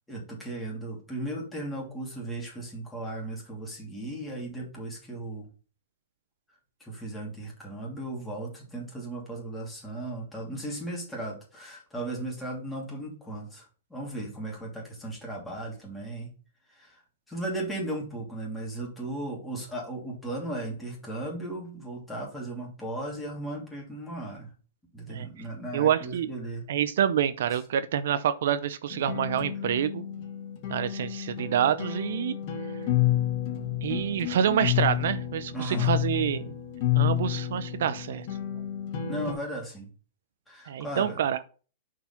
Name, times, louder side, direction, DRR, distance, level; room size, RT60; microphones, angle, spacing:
voice 1, 0.1-5.5 6.8-16.3 16.7-17.0 17.3-24.5 24.9-26.7 35.5-35.9 39.1-39.9 40.5-41.2, right 1 dB, 5° left, -3 dB, 3.0 m, -36 dB
voice 2, 25.7-26.3 26.7-30.0 30.7-32.4 33.8-36.6 36.9-38.3 38.5-38.6 40.7-41.4, right 9 dB, 70° right, 13 dB, 0.6 m, -27 dB
sound 1, 28.9-39.3, left 12 dB, 45° left, 1.8 m, -30 dB
5.6 x 4.7 x 5.7 m, 0.37 s
hypercardioid pair, 140°, 0 cm